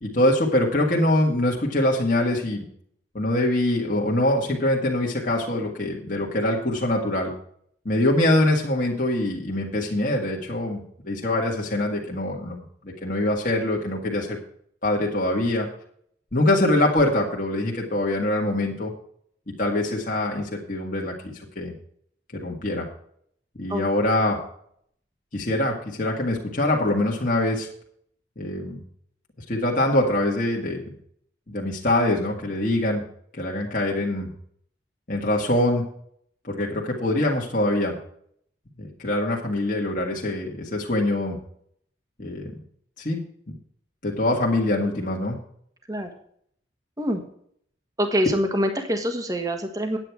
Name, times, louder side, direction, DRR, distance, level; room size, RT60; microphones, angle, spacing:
voice 1, 0.0-2.6 3.1-7.3 7.9-14.4 14.8-15.7 16.3-18.9 19.5-21.7 22.3-22.9 23.6-24.4 25.3-27.7 28.4-28.8 29.5-30.9 31.5-33.0 33.4-34.3 35.1-35.9 36.4-38.0 38.8-41.4 42.2-42.5 43.0-43.2 43.5-43.6 44.0-45.4, left 1 dB, 45° left, -2 dB, 1.9 m, -24 dB
voice 2, 48.0-50.0, equal, 20° right, 5 dB, 1.4 m, -25 dB
9.9 x 9.0 x 4.7 m, 0.65 s
head